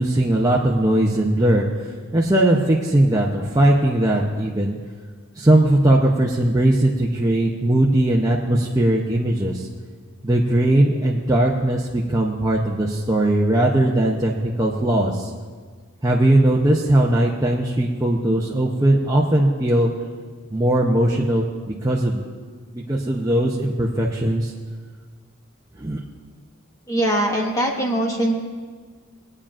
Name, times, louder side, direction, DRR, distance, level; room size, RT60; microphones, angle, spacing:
voice 1, 0.0-1.7 2.1-4.7 5.4-9.7 10.2-15.3 16.0-19.9 20.5-21.4 21.8-22.3 22.7-24.5 25.8-26.0, right 1 dB, 15° right, -3 dB, 0.6 m, -19 dB
voice 2, 26.9-28.4, right 1 dB, 15° left, 0 dB, 1.2 m, -21 dB
22.5 x 8.7 x 2.5 m, 1.5 s
head